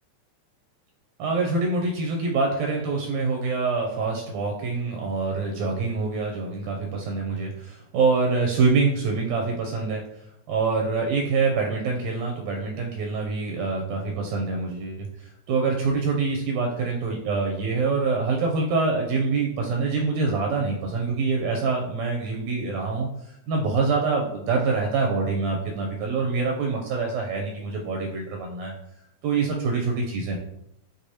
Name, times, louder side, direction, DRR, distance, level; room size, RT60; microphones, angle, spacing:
voice 1, 1.2-10.0 10.5-28.7 29.2-30.4, right 4 dB, 80° right, 1 dB, 1.7 m, -25 dB
6.1 x 2.6 x 2.7 m, 0.81 s
omnidirectional pair, 3.4 m